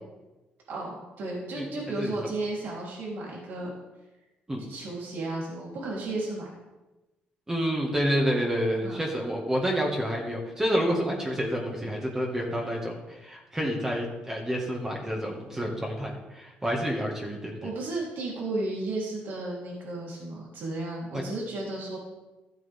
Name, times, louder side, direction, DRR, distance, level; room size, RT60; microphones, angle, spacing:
voice 1, 0.7-3.7 4.7-6.5 8.8-9.0 17.6-22.0, right 2 dB, 70° right, -4 dB, 3.6 m, -33 dB
voice 2, 1.5-2.3 4.5-4.7 7.5-17.7 21.1-21.3, equal, 15° right, -1 dB, 1.9 m, -29 dB
14.0 x 8.4 x 3.6 m, 1.1 s
cardioid pair, 115°, 4 cm